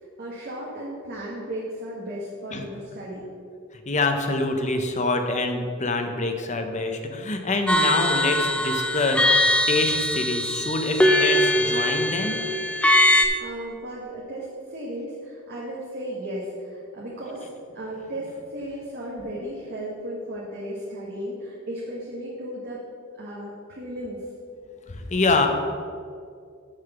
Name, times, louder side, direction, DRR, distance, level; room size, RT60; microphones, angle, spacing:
voice 1, 0.2-3.3 13.0-17.5 17.7-22.8 23.2-24.2, right 1 dB, 50° right, -6 dB, 1.5 m, -35 dB
voice 2, 3.9-12.4 24.9-25.5, left 3 dB, 35° left, 5 dB, 0.8 m, -25 dB
sound 1, 7.7-13.3, left 1 dB, 5° left, 0.5 m, -21 dB
6.6 x 5.7 x 7.0 m, 2.2 s
head